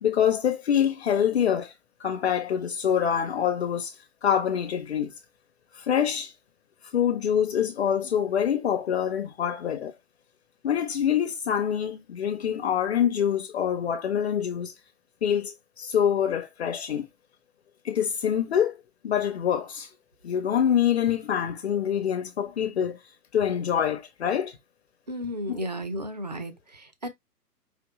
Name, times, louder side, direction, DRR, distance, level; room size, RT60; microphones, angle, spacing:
voice 1, 0.0-1.7 2.0-4.0 4.2-5.1 5.7-6.3 6.9-9.9 10.6-14.7 15.2-17.1 17.8-18.8 19.0-19.9 20.2-23.0 23.3-24.6 25.5-25.6, left 9 dB, 40° left, 0.7 m, -25 dB
voice 2, 25.1-27.1, equal, 30° right, 0.3 m, -34 dB
5.1 x 2.7 x 3.0 m
figure-of-eight pair, 125°, 49 cm